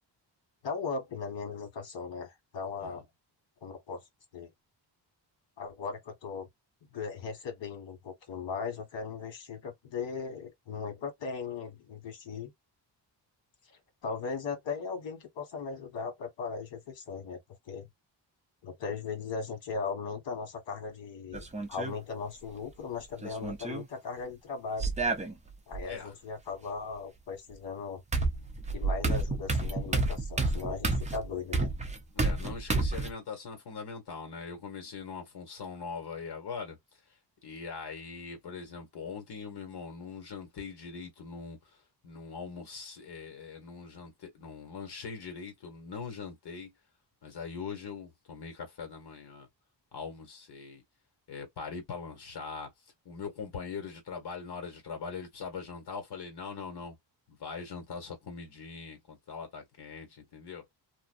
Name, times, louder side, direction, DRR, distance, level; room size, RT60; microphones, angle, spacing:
voice 1, 0.6-3.0 3.6-4.0 4.3-4.5 5.6-6.5 6.9-12.5 14.0-17.4 17.7-17.9 18.6-24.9 25.7-28.0 28.7-31.7, left 5 dB, 85° left, 1.3 m, -38 dB
sound 1, 21.3-21.9 23.2-23.8 24.8-25.8 27.5-27.6 28.1-33.1, right 3 dB, 15° right, 0.5 m, -30 dB
voice 2, 25.8-26.1 32.1-36.8 37.4-41.6 42.0-46.7 47.2-49.5 49.9-50.8 51.3-52.7 53.0-57.0 57.3-60.6, left 5 dB, 65° left, 1.4 m, -41 dB
2.5 x 2.2 x 2.4 m
wide cardioid pair, 165°, 43 cm